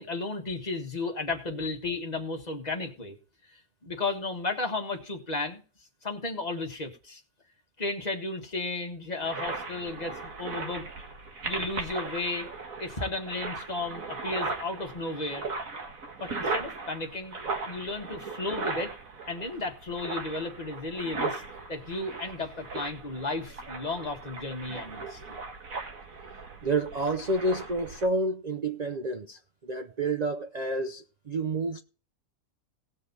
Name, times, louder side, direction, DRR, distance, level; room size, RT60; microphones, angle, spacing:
voice 1, 0.0-3.2 3.8-5.6 6.0-7.2 7.8-10.8 11.4-12.5 12.8-15.4 16.2-17.4 17.6-18.9 19.3-21.4 21.7-25.4, left 3 dB, 25° left, 1.7 m, -34 dB
sound 1, 9.2-28.1, right 3 dB, 55° right, 2.0 m, -37 dB
voice 2, 26.6-31.8, right 2 dB, 80° right, 0.3 m, -29 dB
18.0 x 6.5 x 4.1 m
omnidirectional pair, 1.7 m